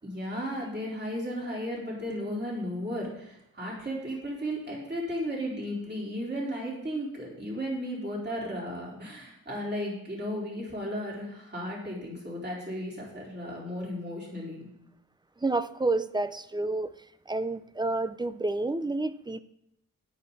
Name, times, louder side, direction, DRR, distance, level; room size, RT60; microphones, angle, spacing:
voice 1, 0.0-14.7, equal, 30° right, 4.2 m, -34 dB
voice 2, 15.4-16.9 17.3-19.4, right 2 dB, 10° right, 0.5 m, -29 dB
13.5 x 10.5 x 4.1 m
wide cardioid pair, 130°, 35 cm